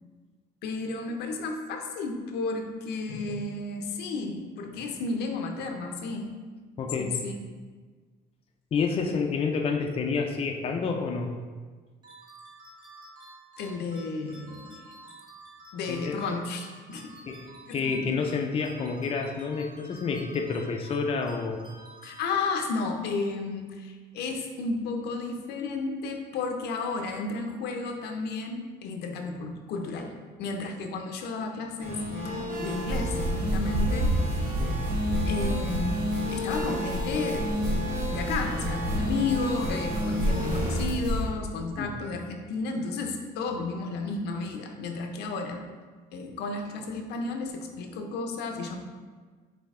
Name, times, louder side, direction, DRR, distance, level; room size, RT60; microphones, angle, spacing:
voice 1, 0.6-6.3 7.0-7.3 13.6-14.8 15.7-17.1 17.7-18.2 22.0-32.1 32.6-34.6 35.3-37.5 38.1-45.6 46.1-48.8, left 3 dB, 80° left, 4 dB, 0.6 m, -33 dB
voice 2, 6.8-7.1 8.7-11.3 15.9-16.2 17.3-17.5 17.7-21.6 34.6-34.8 41.8-41.9, left 5 dB, 35° left, 3 dB, 0.4 m, -29 dB
sound 1, 12.0-23.2, right 1 dB, 25° right, 1.0 m, -50 dB
sound 2, 31.8-40.9, left 1 dB, 50° right, 1.4 m, -32 dB
sound 3, 32.5-41.2, right 1 dB, 85° right, 1.3 m, -30 dB
5.3 x 2.8 x 3.6 m, 1.4 s
cardioid pair, 110°, 17 cm